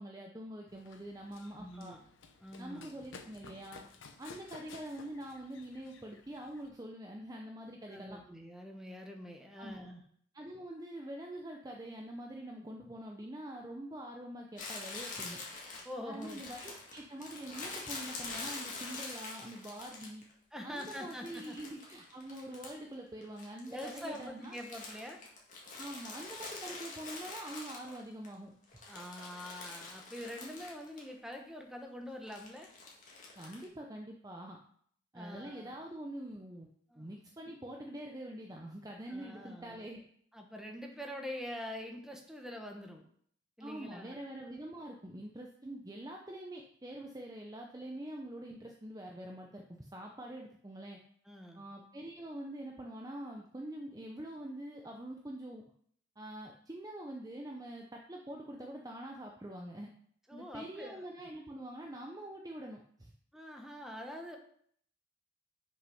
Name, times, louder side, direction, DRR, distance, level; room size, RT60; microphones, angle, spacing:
voice 1, 0.0-2.0 2.6-3.8 4.2-8.2 9.6-9.8 10.3-15.4 16.0-20.2 20.6-24.6 25.8-28.5 33.4-34.6 35.1-36.7 37.0-40.0 43.6-51.0 51.5-55.6 56.2-59.9 60.3-63.1, right 1 dB, 20° right, 1 dB, 0.6 m, -45 dB
Run, 0.7-6.7, left 4 dB, 70° left, 0.9 m, -55 dB
voice 2, 1.4-2.1 2.4-2.9 7.9-10.0 15.8-16.4 20.5-21.6 23.7-25.2 28.9-32.7 35.1-35.7 36.9-37.1 39.1-39.9 40.3-43.0 43.6-44.2 51.2-51.6 60.3-61.1 63.3-64.4, left 1 dB, 5° right, 2 dB, 1.0 m, -45 dB
Crumpling crinkling, 14.6-20.3 20.8-22.9 23.2-28.3 28.6-31.1 31.3-31.4 32.3-33.7, left 3 dB, 40° left, 1.8 m, -45 dB
6.6 x 5.4 x 5.5 m, 0.62 s
head